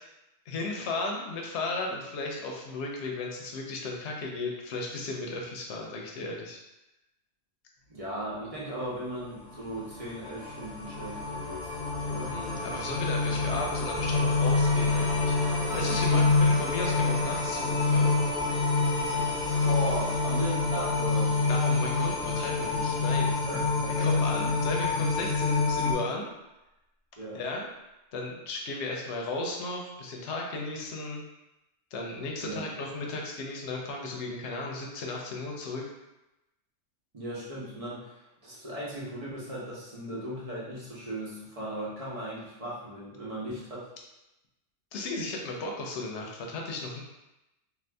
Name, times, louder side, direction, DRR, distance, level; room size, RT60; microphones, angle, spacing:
voice 1, 0.5-6.6 12.3-18.2 21.5-23.3 24.0-26.3 27.3-27.6 28.1-31.2 31.9-35.9 44.9-47.0, left 2 dB, 75° left, 0 dB, 0.9 m, -35 dB
voice 2, 7.9-11.8 12.1-12.4 19.6-21.4 23.5-24.2 27.2-27.4 32.4-32.6 37.1-43.9, right 1 dB, 35° right, -7 dB, 0.9 m, -37 dB
sound 1, 9.7-25.9, left 3 dB, 50° left, 0.8 m, -27 dB
sound 2, 13.9-23.9, right 1 dB, 65° right, 0.8 m, -41 dB
2.6 x 2.5 x 3.3 m, 0.96 s
omnidirectional pair, 1.2 m